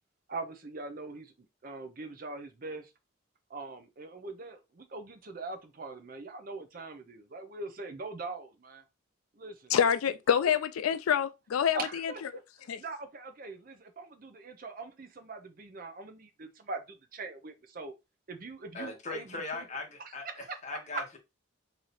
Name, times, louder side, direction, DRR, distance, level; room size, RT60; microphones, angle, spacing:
voice 1, 0.3-1.3 1.6-2.9 3.5-8.8 9.4-9.7 11.7-12.2 12.8-17.9 18.3-19.7 20.2-20.6 20.9-21.2, right 3 dB, 40° right, 0.6 m, -42 dB
voice 2, 9.7-12.1 12.7-12.8, left 8 dB, 90° left, 0.4 m, -27 dB
voice 3, 18.7-21.2, left 3 dB, 35° left, 1.0 m, -39 dB
3.1 x 2.7 x 4.0 m
head